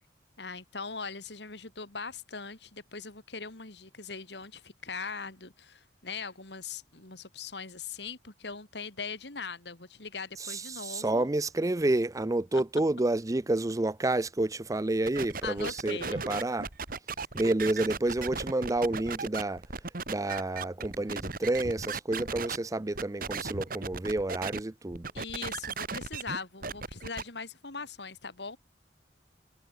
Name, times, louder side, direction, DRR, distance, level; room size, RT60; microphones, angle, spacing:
voice 1, 0.4-11.3 12.5-12.6 15.4-16.3 25.1-28.6, left 4 dB, 70° left, 3.1 m, -40 dB
voice 2, 10.4-16.7 17.3-19.6 20.1-25.1, right 2 dB, 20° right, 0.5 m, -29 dB
sound 1, 15.0-22.6 22.9-24.6 24.9-27.2, right 4 dB, 50° right, 2.2 m, -36 dB
head